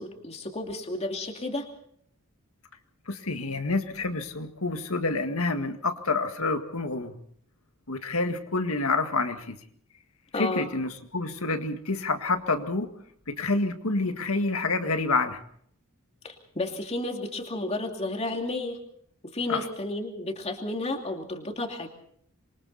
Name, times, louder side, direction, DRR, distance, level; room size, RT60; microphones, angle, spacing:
voice 1, 0.0-1.7 10.3-10.7 16.2-18.8 19.2-21.9, left 2 dB, 30° left, 3 dB, 2.6 m, -32 dB
voice 2, 3.1-7.2 7.9-9.6 10.3-12.9 13.3-15.4 19.5-19.7, left 3 dB, 75° left, 7 dB, 1.9 m, -28 dB
27.0 x 23.5 x 4.2 m, 0.63 s
head